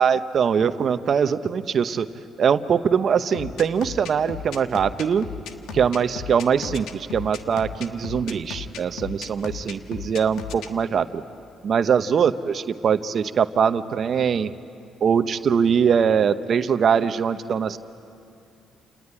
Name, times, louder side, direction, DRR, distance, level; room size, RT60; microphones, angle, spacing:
voice 1, 0.0-2.1 2.4-5.3 5.7-11.2 11.6-14.5 15.0-17.8, right 7 dB, 55° right, 11 dB, 0.9 m, -22 dB
sound 1, 3.3-10.7, left 7 dB, 85° left, 1.4 m, -35 dB
28.5 x 19.0 x 9.9 m, 2.5 s
cardioid pair, 90°, 0 cm